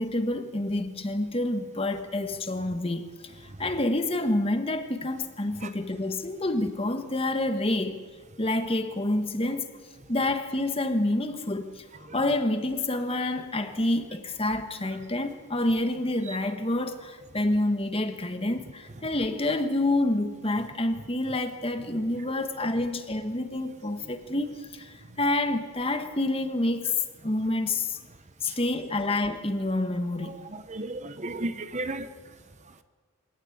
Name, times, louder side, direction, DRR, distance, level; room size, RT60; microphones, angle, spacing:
voice 1, 0.0-8.0 8.4-9.7 10.1-26.9 27.2-28.0 28.4-30.4, left 1 dB, 25° left, 8 dB, 1.4 m, -28 dB
voice 2, 30.3-32.1, right 2 dB, 30° right, 11 dB, 0.9 m, -34 dB
24.5 x 18.0 x 8.6 m, 1.6 s
head